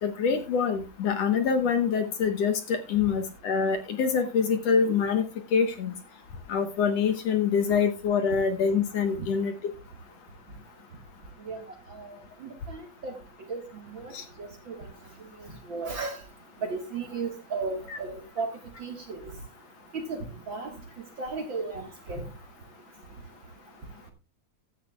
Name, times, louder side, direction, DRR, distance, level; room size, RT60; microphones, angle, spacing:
voice 1, 0.0-5.2 5.5-5.9 6.5-9.5 14.1-14.2, left 6 dB, 60° left, 7 dB, 2.2 m, -25 dB
voice 2, 12.4-13.1 13.5-13.6 13.9-14.1 14.4-14.8 15.7-16.2 16.6-18.5 18.8-19.2 19.9-20.2 20.5-20.7 21.2-22.2, right 4 dB, 45° right, 4 dB, 2.0 m, -34 dB
15.0 x 11.5 x 2.3 m, 0.27 s
omnidirectional pair, 3.5 m